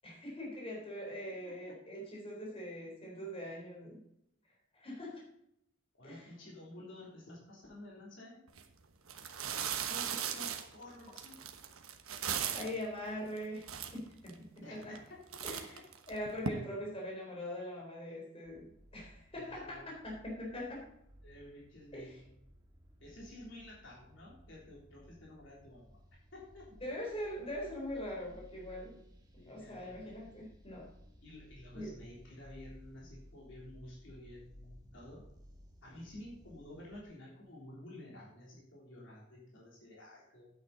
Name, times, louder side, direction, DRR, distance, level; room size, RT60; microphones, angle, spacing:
voice 1, 0.0-4.0 4.7-5.3 6.0-6.3 12.5-13.6 13.9-15.0 15.4-15.8 16.1-18.7 18.9-20.8 21.9-22.1 26.8-29.0 29.5-30.9 31.7-31.9, left 1 dB, 25° left, -2 dB, 3.8 m, -42 dB
voice 2, 1.3-1.8 5.9-8.4 9.4-11.4 12.6-12.7 14.6-15.4 15.7-15.8 19.3-19.9 21.2-22.2 23.0-25.9 26.3-26.7 29.4-30.1 31.2-35.3 35.8-40.5, left 1 dB, 60° left, -4 dB, 3.5 m, -52 dB
sound 1, 8.5-8.6 9.1-12.8 13.4-13.5 13.6-14.3 14.8-15.1 15.3-16.5, right 8 dB, 85° right, 1.1 m, -38 dB
sound 2, 18.5-37.0, equal, 20° right, 1.6 m, -58 dB
9.3 x 8.9 x 4.1 m, 0.76 s
head